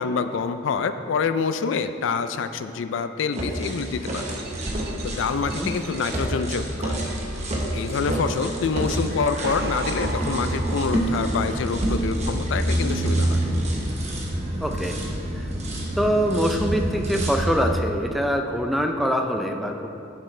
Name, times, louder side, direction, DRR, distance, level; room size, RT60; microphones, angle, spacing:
voice 1, 0.0-4.2 5.0-7.1 7.7-13.4, left 5 dB, 65° left, 10 dB, 0.4 m, -26 dB
sound 1, 3.3-17.7, right 1 dB, 35° right, 1.1 m, -27 dB
sound 2, 4.4-6.1 7.0-8.6 9.2-11.3, right 2 dB, 50° right, 0.7 m, -35 dB
voice 2, 14.6-15.0 15.3-15.5 15.9-19.9, equal, ahead, 3 dB, 0.4 m, -24 dB
10.0 x 7.1 x 3.2 m, 2.8 s
head